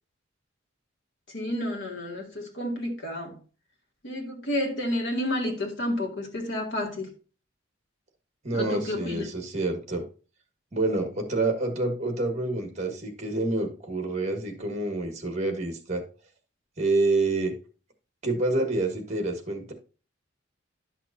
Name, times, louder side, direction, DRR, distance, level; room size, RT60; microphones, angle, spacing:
voice 1, 1.3-3.4 4.0-7.1 8.5-9.3, left 1 dB, 60° left, 2.1 m, -30 dB
voice 2, 8.4-10.0 10.7-16.0 16.8-17.5 18.2-19.7, right 2 dB, 35° right, 1.5 m, -27 dB
11.0 x 6.0 x 2.6 m
head